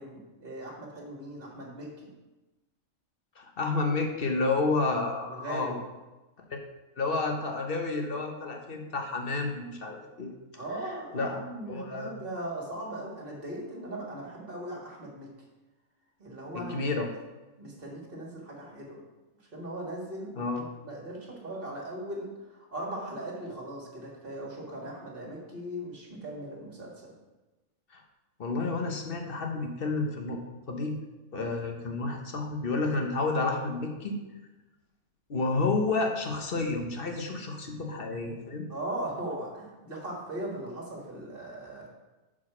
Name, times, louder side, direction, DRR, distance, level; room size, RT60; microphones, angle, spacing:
voice 1, 0.0-2.1 5.3-5.8 10.5-15.4 16.2-16.7 17.6-19.0 19.5-27.2 38.7-41.9, right 1 dB, 40° right, -2 dB, 1.9 m, -39 dB
voice 2, 3.4-5.7 6.5-6.6 7.0-10.3 11.1-11.3 11.7-12.2 16.5-17.1 20.4-20.7 27.9-28.0 28.4-30.4 30.7-30.9 31.3-34.2 35.3-38.7, left 3 dB, 45° left, 3 dB, 1.1 m, -30 dB
6.3 x 4.9 x 5.9 m, 1.1 s
omnidirectional pair, 1.4 m